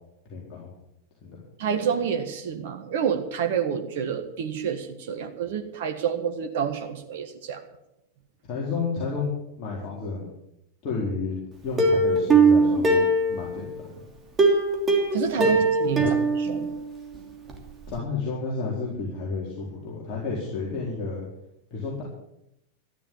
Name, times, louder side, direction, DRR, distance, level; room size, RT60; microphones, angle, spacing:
voice 1, 0.3-0.7 1.2-1.4 8.5-9.3 9.6-10.3 10.8-11.3 11.6-14.0 15.4-15.5 16.0-16.2 17.9-21.3 21.7-22.0, left 4 dB, 35° left, -5 dB, 4.2 m, -31 dB
voice 2, 1.6-7.6 15.1-16.7, right 7 dB, 55° right, 6 dB, 1.6 m, -28 dB
Plucked string instrument, 11.8-13.8 14.4-17.2 17.5-17.6 17.9-18.0, right 3 dB, 20° right, 2.8 m, -21 dB
14.0 x 11.0 x 7.2 m, 0.83 s
figure-of-eight pair, 90°, 0 cm